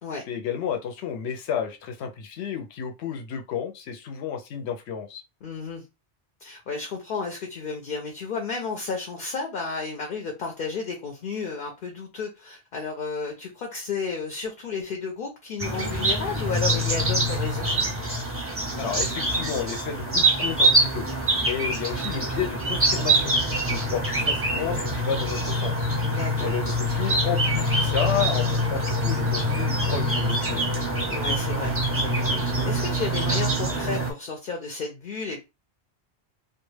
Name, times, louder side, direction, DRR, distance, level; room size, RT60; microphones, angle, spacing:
voice 1, 0.3-5.2 18.8-21.0 21.4-23.3 23.7-25.9 26.4-30.6, left 8 dB, 85° left, 0.9 m, -31 dB
voice 2, 5.4-5.8 6.4-17.7 26.1-26.5 31.1-32.3 32.6-35.4, left 4 dB, 60° left, 0.7 m, -32 dB
sound 1, 15.6-34.1, right 1 dB, 15° right, 0.5 m, -25 dB
2.3 x 2.3 x 3.1 m
omnidirectional pair, 1.1 m